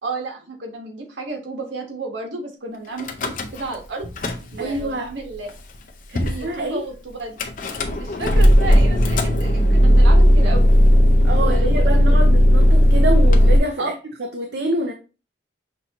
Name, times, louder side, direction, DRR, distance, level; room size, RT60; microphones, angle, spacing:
voice 1, 0.0-4.0 4.5-5.5 6.2-7.4 8.0-10.6 11.4-12.2 13.8-13.9, right 3 dB, 90° right, 1.4 m, -32 dB
Car / Engine starting / Idling, 3.0-3.8 4.0-4.8 5.5-5.6 5.7-5.8 6.2-6.4 7.4-13.6, equal, 45° left, 0.6 m, -15 dB
voice 2, 4.6-5.1 6.1-6.8 11.2-13.9 14.2-14.9, right 1 dB, 65° right, 0.5 m, -26 dB
5.9 x 2.7 x 2.9 m
head